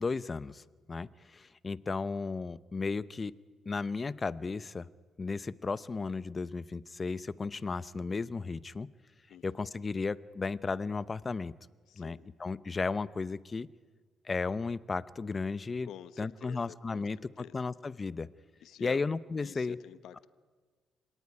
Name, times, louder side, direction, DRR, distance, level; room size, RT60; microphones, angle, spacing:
voice 1, 0.0-3.3 3.7-4.9 5.2-8.9 9.4-11.5 12.0-13.7 14.2-15.9 16.2-18.3 18.8-19.8, left 4 dB, 30° left, 18 dB, 0.7 m, -34 dB
voice 2, 9.3-9.6 11.9-12.3 15.8-17.6 18.6-19.0 19.4-20.3, left 10 dB, 80° left, 14 dB, 0.9 m, -49 dB
26.5 x 18.0 x 9.8 m, 1.4 s
cardioid pair, 90°, 0 cm